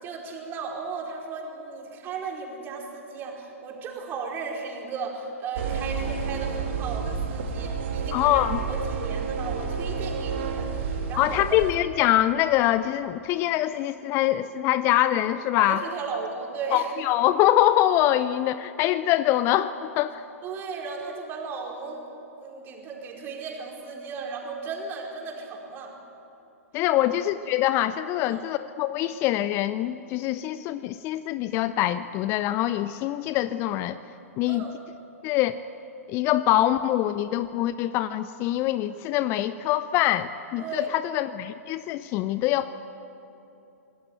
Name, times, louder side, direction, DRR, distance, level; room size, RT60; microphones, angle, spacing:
voice 1, 0.0-8.4 8.7-11.6 15.6-16.9 20.4-22.1 22.4-25.9 27.0-27.1 28.3-28.4 34.5-34.7 40.6-41.0, right 4 dB, 25° right, 0 dB, 4.8 m, -35 dB
sound 1, 5.5-11.7, right 5 dB, 50° right, 2.7 m, -30 dB
voice 2, 8.1-8.6 11.2-15.8 16.7-20.2 26.7-34.0 34.4-34.6 35.2-35.6 36.1-42.7, left 13 dB, 30° left, 14 dB, 0.6 m, -24 dB
26.5 x 18.5 x 9.2 m, 2.9 s
figure-of-eight pair, 110°, 8 cm